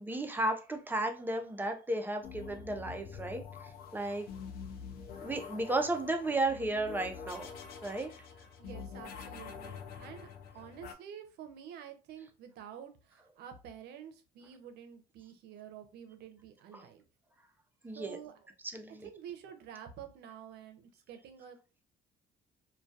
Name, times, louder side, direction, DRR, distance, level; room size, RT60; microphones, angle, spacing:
voice 1, 0.0-3.4 3.9-4.2 5.2-7.5 7.8-8.1 16.7-16.8 17.8-18.2 18.7-19.1, right 2 dB, 10° right, 5 dB, 0.4 m, -34 dB
sound 1, 2.2-10.9, left 6 dB, 65° left, 0.5 m, -46 dB
voice 2, 8.6-17.0 17.9-18.3 19.0-21.6, right 9 dB, 75° right, 7 dB, 0.6 m, -49 dB
2.2 x 2.2 x 2.6 m, 0.32 s
cardioid pair, 110°, 17 cm